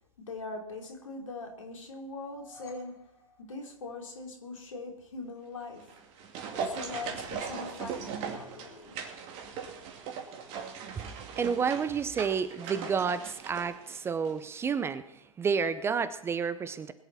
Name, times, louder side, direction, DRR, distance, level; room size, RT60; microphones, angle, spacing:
voice 1, 0.2-3.1 3.4-5.9 6.6-9.0, left 3 dB, 70° left, 2 dB, 3.4 m, -41 dB
sound 1, 2.1-4.4, left 2 dB, 20° left, 4.2 m, -55 dB
sound 2, 5.8-14.4 14.6-14.7, right 6 dB, 35° right, 2.5 m, -39 dB
voice 2, 11.4-16.9, right 6 dB, 15° right, 13 dB, 0.7 m, -30 dB
21.5 x 11.0 x 4.2 m, 0.88 s
figure-of-eight pair, 105°, 17 cm